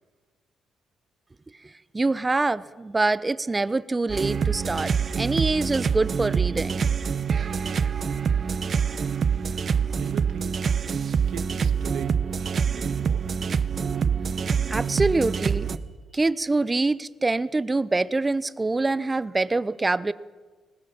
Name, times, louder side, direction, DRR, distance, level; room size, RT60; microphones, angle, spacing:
voice 1, 1.6-6.8 14.7-15.7 16.1-20.1, right 3 dB, 20° right, 16 dB, 0.8 m, -25 dB
sound 1, 4.1-15.8, right 6 dB, 45° right, 1.0 m, -25 dB
voice 2, 9.9-10.6 11.3-13.3, right 8 dB, 80° right, 9 dB, 1.6 m, -40 dB
21.0 x 19.5 x 7.3 m, 1.4 s
cardioid pair, 90°, 0 cm